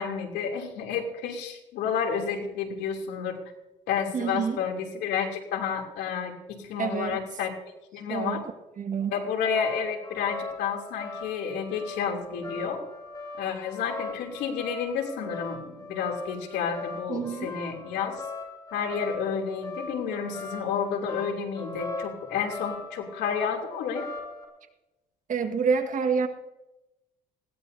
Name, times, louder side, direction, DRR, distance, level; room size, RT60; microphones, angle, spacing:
voice 1, 0.0-3.4 3.9-6.3 6.6-7.5 7.9-8.4 9.1-12.8 13.4-18.2 18.7-24.1, left 7 dB, 85° left, 1 dB, 3.0 m, -30 dB
voice 2, 4.1-4.6 6.8-7.2 8.1-8.4 8.8-9.1 17.1-17.5 25.3-26.3, right 6 dB, 50° right, 5 dB, 1.7 m, -27 dB
sound 1, 9.1-24.5, left 3 dB, 25° left, 6.7 m, -40 dB
20.0 x 17.0 x 2.8 m, 0.99 s
cardioid pair, 110°, 17 cm